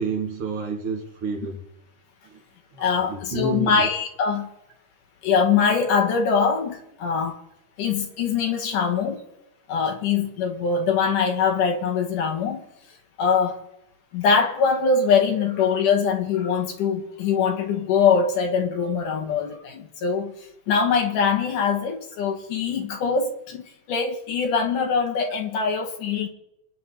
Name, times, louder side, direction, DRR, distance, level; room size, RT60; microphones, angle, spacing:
voice 1, 0.0-1.6 2.7-3.9, right 3 dB, 45° right, 3.4 m, -29 dB
voice 2, 2.8-4.5 5.2-7.4 7.8-9.2 9.7-12.7 13.2-13.6 14.1-20.3 20.7-26.3, left 6 dB, 80° left, 3.3 m, -23 dB
28.0 x 9.6 x 4.2 m
omnidirectional pair, 3.6 m